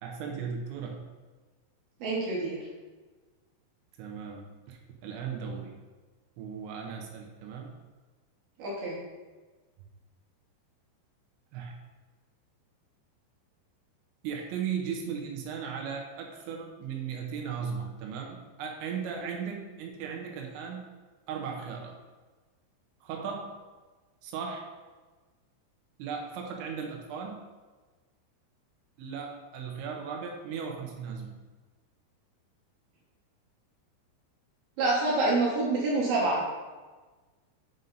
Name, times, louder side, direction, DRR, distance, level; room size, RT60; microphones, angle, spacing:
voice 1, 0.0-1.0 4.0-5.8 6.4-7.7 11.5-11.7 14.2-20.8 21.3-22.0 23.0-23.6 24.2-24.7 26.0-27.4 29.0-31.4, right 6 dB, 85° right, 1 dB, 2.9 m, -37 dB
voice 2, 2.0-2.6 8.6-9.0 34.8-36.4, right 2 dB, 65° right, -6 dB, 2.6 m, -27 dB
9.2 x 5.4 x 2.6 m, 1.3 s
omnidirectional pair, 5.5 m